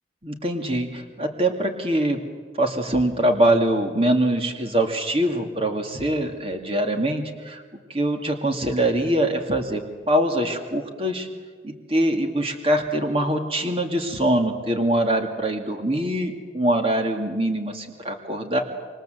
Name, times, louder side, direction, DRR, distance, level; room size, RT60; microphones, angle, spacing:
voice 1, 0.2-2.2 2.6-7.6 7.9-9.8 10.1-11.3 11.6-18.6, right 1 dB, 30° right, 5 dB, 2.4 m, -23 dB
27.0 x 24.0 x 7.8 m, 1.5 s
head